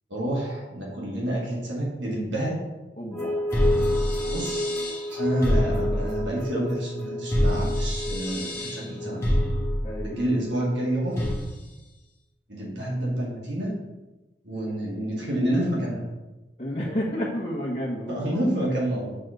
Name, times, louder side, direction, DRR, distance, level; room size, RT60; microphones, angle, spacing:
voice 1, 0.1-2.6 4.3-4.8 5.1-9.2 10.0-11.2 12.5-13.7 14.4-16.0 18.1-19.1, right 1 dB, 85° right, -4 dB, 2.3 m, -28 dB
voice 2, 3.0-3.6 9.8-10.2 16.6-18.2, equal, 35° left, -4 dB, 1.0 m, -31 dB
sound 1, 3.1-11.5, left 1 dB, 15° left, 1.8 m, -26 dB
6.3 x 4.3 x 6.5 m, 1.1 s
head